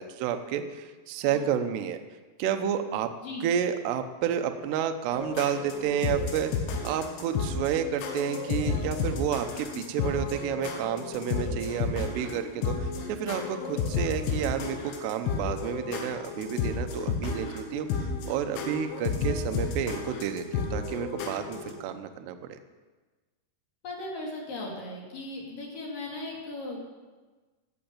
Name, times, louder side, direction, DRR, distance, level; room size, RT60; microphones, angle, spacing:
voice 1, 0.0-2.0 2.4-3.1 3.4-6.5 6.8-22.6, right 9 dB, 75° right, 7 dB, 2.6 m, -30 dB
sound 1, 5.1-21.7, left 5 dB, 90° left, 4.1 m, -32 dB
voice 2, 23.8-26.9, left 2 dB, 50° left, -2 dB, 3.6 m, -37 dB
15.5 x 7.1 x 8.8 m, 1.3 s
omnidirectional pair, 5.6 m